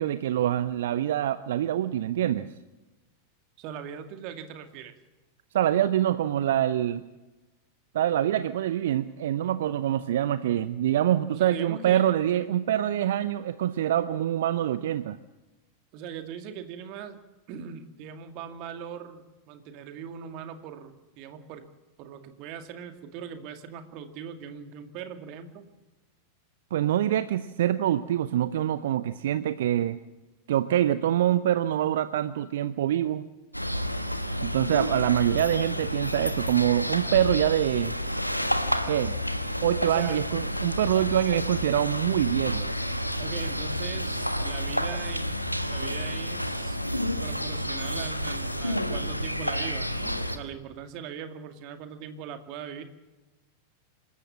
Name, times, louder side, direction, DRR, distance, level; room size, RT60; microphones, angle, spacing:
voice 1, 0.0-2.5 5.5-7.1 7.9-15.2 26.7-30.0 30.5-33.3 34.4-37.9 38.9-39.2 39.6-42.7, right 11 dB, 60° right, 14 dB, 0.7 m, -25 dB
voice 2, 3.6-4.9 11.3-12.5 15.9-17.2 17.5-21.7 22.0-25.7 39.8-40.2 43.2-45.3 45.7-46.8 47.2-52.8, right 8 dB, 45° right, 8 dB, 2.2 m, -40 dB
sound 1, 33.5-50.4, equal, 90° left, 1.3 m, -30 dB
26.0 x 14.0 x 7.4 m, 1.1 s
figure-of-eight pair, 90°, 0 cm